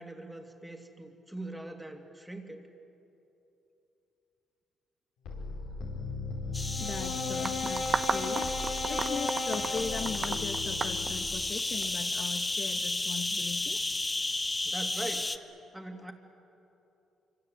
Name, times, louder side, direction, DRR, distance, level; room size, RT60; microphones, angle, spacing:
voice 1, 0.0-2.7 14.6-15.4 15.7-16.1, right 1 dB, 5° right, 4 dB, 2.6 m, -42 dB
sound 1, 5.3-11.5, left 3 dB, 90° left, 4.8 m, -35 dB
sound 2, 6.5-15.4, left 2 dB, 20° left, 1.0 m, -33 dB
voice 2, 6.8-8.6 8.9-13.8, left 5 dB, 55° left, 8 dB, 1.3 m, -39 dB
sound 3, 7.4-11.8, right 5 dB, 40° right, 0.8 m, -33 dB
25.5 x 25.0 x 8.0 m, 2.9 s
cardioid pair, 90°, 0 cm